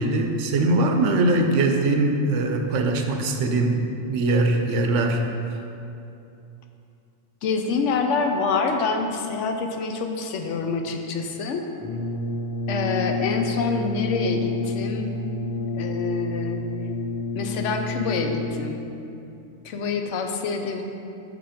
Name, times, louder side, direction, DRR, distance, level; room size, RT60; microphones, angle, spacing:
voice 1, 0.0-3.8 4.1-5.2, right 2 dB, 90° right, 4 dB, 1.0 m, -21 dB
voice 2, 7.4-11.7 12.7-15.2 15.7-16.7 17.3-18.8 19.6-20.8, left 4 dB, 80° left, 4 dB, 1.0 m, -26 dB
Brass instrument, 11.8-18.9, left 2 dB, 45° left, 1.7 m, -29 dB
6.1 x 5.0 x 5.0 m, 2.7 s
omnidirectional pair, 1.2 m